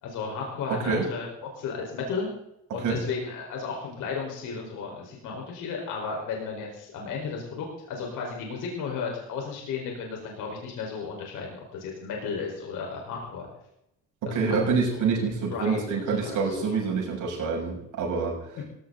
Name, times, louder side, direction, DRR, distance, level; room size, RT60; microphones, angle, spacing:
voice 1, 0.0-2.3 2.7-13.5 14.3-15.1 15.5-16.8, left 5 dB, 90° left, 0 dB, 4.5 m, -34 dB
voice 2, 0.7-1.1 2.7-3.0 14.2-18.5, right 4 dB, 85° right, -1 dB, 6.5 m, -27 dB
18.5 x 16.5 x 3.9 m, 0.81 s
cardioid pair, 90°, 30 cm